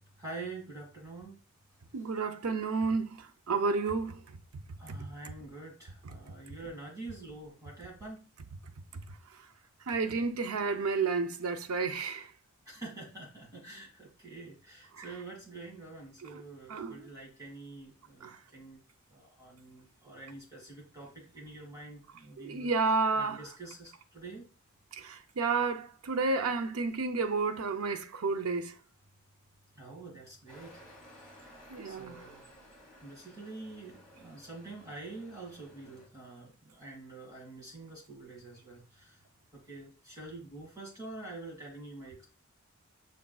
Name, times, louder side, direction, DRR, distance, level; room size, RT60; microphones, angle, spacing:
voice 1, 0.2-1.4 2.0-2.1 4.8-8.2 12.7-18.8 19.1-22.7 23.1-24.5 29.8-30.8 31.1-31.5 31.8-32.5 33.0-39.2 39.5-42.2, right 2 dB, 15° right, 2.0 m, -46 dB
voice 2, 1.9-4.2 4.9-5.0 9.9-12.3 15.0-15.1 16.3-16.4 16.7-17.1 18.2-18.4 22.4-23.4 25.0-28.7 31.7-32.2, right 4 dB, 85° right, 0.5 m, -31 dB
sound 1, 30.5-36.1, equal, 5° left, 1.6 m, -56 dB
6.3 x 3.5 x 2.3 m
head